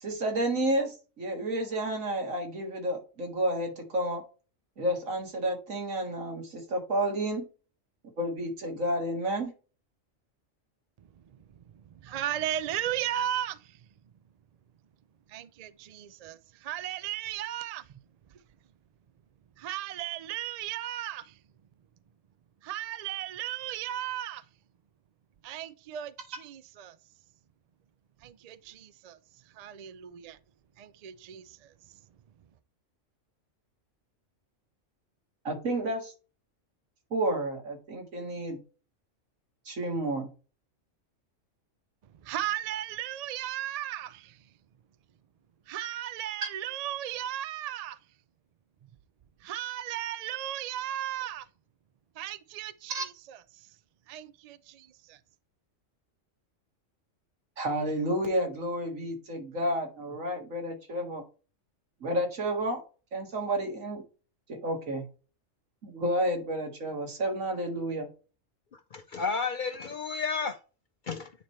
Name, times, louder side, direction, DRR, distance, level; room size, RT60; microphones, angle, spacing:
voice 1, 0.0-4.2 4.8-7.4 8.2-9.5 35.4-36.1 37.1-38.6 39.7-40.3 52.9-53.0 57.6-61.2 62.0-62.8 63.1-64.0 64.5-65.0 65.8-68.1, right 1 dB, 90° right, 2.2 m, -30 dB
voice 2, 11.9-13.8 15.3-18.0 19.6-21.3 22.6-24.4 25.4-27.0 28.2-29.2 29.6-30.4 30.8-31.7 42.2-44.4 45.7-48.0 49.4-51.5 52.2-53.4 54.1-55.2, right 12 dB, 75° right, 0.3 m, -36 dB
voice 3, 68.7-70.6 71.1-71.3, left 5 dB, 55° left, 0.5 m, -32 dB
9.3 x 3.2 x 4.3 m
omnidirectional pair, 1.3 m